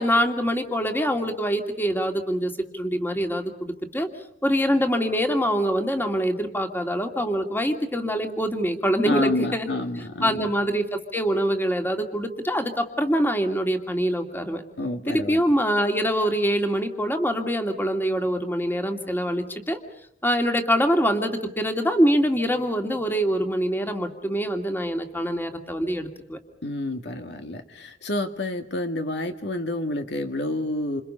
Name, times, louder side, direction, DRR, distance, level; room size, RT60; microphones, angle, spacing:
voice 1, 0.0-4.1 4.4-9.7 10.2-14.6 15.1-19.8 20.2-26.4, equal, 10° left, 4 dB, 2.4 m, -24 dB
voice 2, 9.0-10.5 14.8-15.4 26.6-31.0, left 1 dB, 70° left, 6 dB, 2.1 m, -29 dB
28.5 x 27.5 x 5.6 m, 0.74 s
head